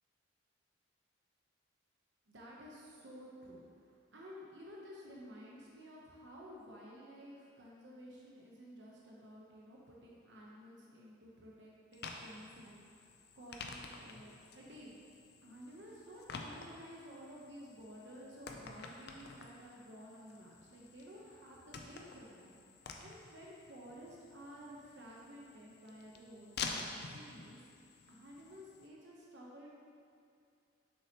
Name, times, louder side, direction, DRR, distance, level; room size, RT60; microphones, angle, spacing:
voice 1, 2.3-15.0 15.4-22.5 22.8-27.6 28.1-29.7, equal, 65° right, -4 dB, 0.9 m, -53 dB
sound 1, 11.9-28.9, left 4 dB, 55° left, 0.4 m, -49 dB
6.6 x 5.6 x 2.9 m, 2.4 s
head